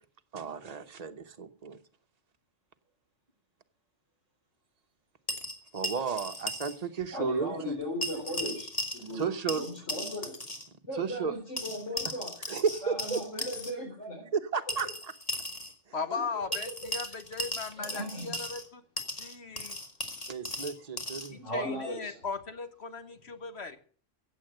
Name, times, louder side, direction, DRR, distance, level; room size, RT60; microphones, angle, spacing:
voice 1, 0.3-1.8 5.7-7.8 9.0-9.6 10.9-11.4 12.5-13.2 14.3-15.1 20.3-21.4, right 6 dB, 35° right, 1.1 m, -33 dB
sound 1, 5.3-6.8 7.0-7.1 8.0-9.2 9.5-10.7 11.6-13.7 14.7-15.7 16.5-18.7 19.0-21.3, left 1 dB, 30° left, 2.2 m, -36 dB
voice 2, 7.1-10.3 10.9-12.3 12.8-14.2 16.1-16.2 17.8-18.3 21.4-22.1, equal, 90° left, 4.9 m, -37 dB
voice 3, 15.9-18.8 19.1-19.8 21.3-23.8, left 5 dB, 60° left, 1.4 m, -38 dB
16.0 x 7.8 x 7.7 m
omnidirectional pair, 1.3 m